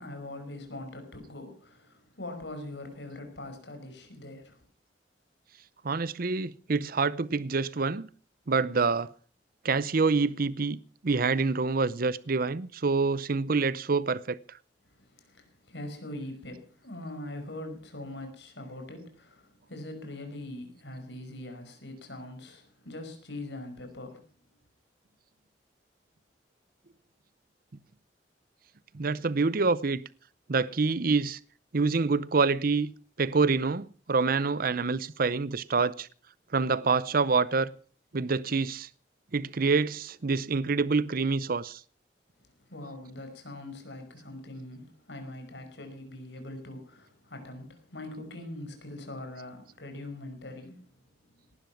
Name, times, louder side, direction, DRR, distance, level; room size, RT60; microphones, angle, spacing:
voice 1, 0.0-4.6 15.2-24.2 42.7-50.8, left 1 dB, 75° left, 5.3 m, -42 dB
voice 2, 5.8-8.1 8.5-9.1 9.6-14.4 28.9-30.0 30.5-31.4 31.7-32.9 33.2-36.1 36.5-37.7 38.1-38.9 39.3-41.8, right 4 dB, 55° right, 0.7 m, -26 dB
18.5 x 12.0 x 5.9 m
head